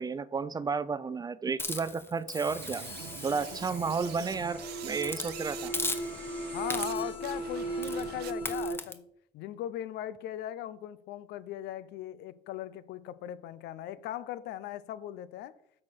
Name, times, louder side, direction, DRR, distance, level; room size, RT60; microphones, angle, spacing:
voice 1, 0.0-2.8 3.2-5.7, right 5 dB, 25° right, 0.4 m, -32 dB
Hiss, 1.6-4.5 5.0-5.3 5.7-6.3 6.7-7.2 7.8-8.1 8.5-8.9, left 2 dB, 15° left, 0.9 m, -38 dB
sound 1, 2.4-7.0 7.2-8.6, right 12 dB, 75° right, 0.8 m, -45 dB
sound 2, 2.8-8.7, right 2 dB, 30° left, 2.1 m, -38 dB
voice 2, 6.5-9.0 9.3-15.5, left 12 dB, 80° left, 0.6 m, -39 dB
8.6 x 4.3 x 6.5 m
cardioid pair, 110°, 17 cm